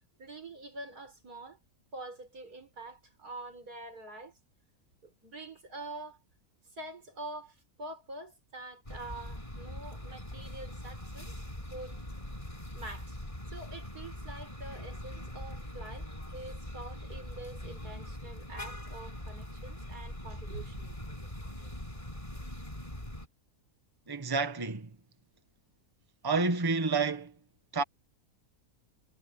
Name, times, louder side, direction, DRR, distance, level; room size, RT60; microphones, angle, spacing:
voice 1, 0.2-1.6 1.9-4.4 5.0-6.2 6.7-11.3 11.7-12.0 12.7-13.2 13.5-21.0, right 2 dB, 90° right, 6.1 m, -45 dB
sound 1, 8.9-23.3, left 1 dB, 20° left, 5.9 m, -42 dB
voice 2, 24.1-24.9 26.2-27.3 27.7-27.8, right 4 dB, 15° right, 1.3 m, -29 dB
omnidirectional pair, 1.6 m